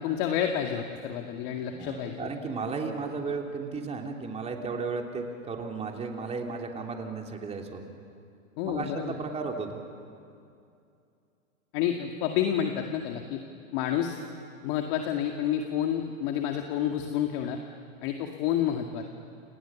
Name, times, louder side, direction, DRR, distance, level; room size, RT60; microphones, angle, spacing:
voice 1, 0.0-2.3 8.6-9.2 11.7-13.4 13.7-14.2 14.6-17.6 18.0-19.0, left 9 dB, 40° left, 4 dB, 2.1 m, -29 dB
voice 2, 1.7-7.8 8.7-9.8, right 4 dB, 15° right, 2 dB, 3.1 m, -34 dB
29.0 x 28.0 x 7.2 m, 2.5 s
hypercardioid pair, 125°, 40 cm